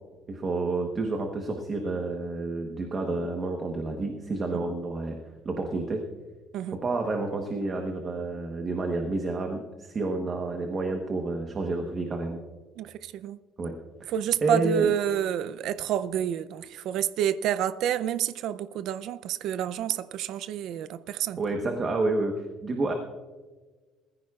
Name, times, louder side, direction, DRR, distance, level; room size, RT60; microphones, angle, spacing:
voice 1, 0.3-5.2 5.4-6.0 6.7-12.4 13.6-13.7 14.0-14.1 14.4-14.9 21.4-22.9, right 3 dB, 25° right, 3 dB, 1.1 m, -29 dB
voice 2, 12.8-13.4 14.1-21.4, right 10 dB, 55° right, 14 dB, 0.5 m, -29 dB
21.5 x 15.0 x 2.4 m, 1.3 s
cardioid pair, 175°, 0 cm